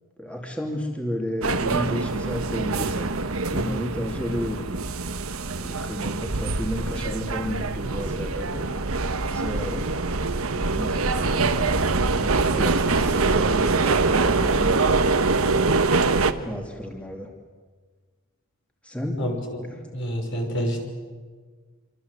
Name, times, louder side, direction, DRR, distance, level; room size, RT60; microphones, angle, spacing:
voice 1, 0.2-3.1 3.5-4.7 5.6-8.7 9.3-9.9 10.5-11.5 12.2-15.1 16.5-17.3 18.8-19.2, equal, 5° left, 1 dB, 2.6 m, -32 dB
sound 1, 1.4-16.3, right 3 dB, 90° right, 1.4 m, -24 dB
voice 2, 19.2-20.8, equal, 60° left, 2 dB, 6.2 m, -28 dB
26.5 x 25.5 x 8.2 m, 1.5 s
head